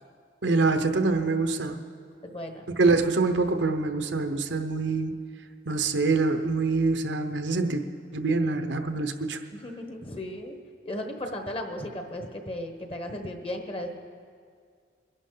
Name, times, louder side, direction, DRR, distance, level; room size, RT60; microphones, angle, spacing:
voice 1, 0.4-1.8 2.8-5.1 5.7-7.8 8.1-9.4, right 3 dB, 80° right, 7 dB, 0.9 m, -25 dB
voice 2, 2.2-2.6 9.5-10.6 10.8-14.0, left 1 dB, 30° left, 5 dB, 1.2 m, -35 dB
22.5 x 11.0 x 3.9 m, 2.1 s
head